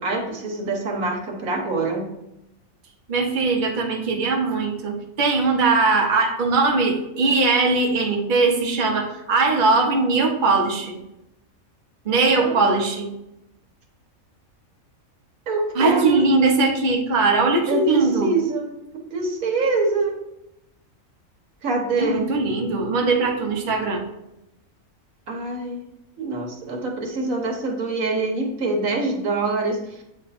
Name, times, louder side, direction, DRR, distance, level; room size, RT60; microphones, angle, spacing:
voice 1, 0.0-2.0 12.3-12.6 15.5-16.3 17.7-18.7 19.1-20.2 21.6-22.2 25.3-25.8 26.2-29.8, right 3 dB, 75° right, 1 dB, 1.5 m, -25 dB
voice 2, 3.1-11.0 12.0-13.1 15.7-18.3 22.0-24.0, right 3 dB, 40° right, 0 dB, 1.1 m, -20 dB
8.1 x 3.5 x 4.2 m, 0.87 s
omnidirectional pair, 1.4 m